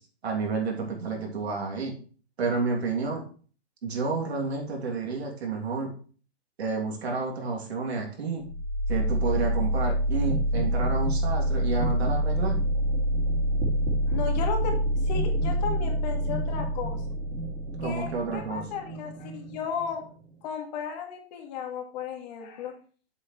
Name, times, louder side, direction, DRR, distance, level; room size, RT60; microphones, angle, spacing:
voice 1, 0.2-2.0 2.4-3.3 3.8-5.9 6.6-8.5 8.9-12.6 17.8-18.6, right 4 dB, 75° right, 0 dB, 2.9 m, -30 dB
sound 1, 8.4-20.3, equal, 35° right, 2.5 m, -27 dB
voice 2, 14.1-14.8 15.0-17.0 17.8-20.0 20.4-22.7, left 6 dB, 40° left, 3 dB, 1.9 m, -34 dB
7.7 x 6.5 x 3.2 m, 0.40 s
hypercardioid pair, 140°, 32 cm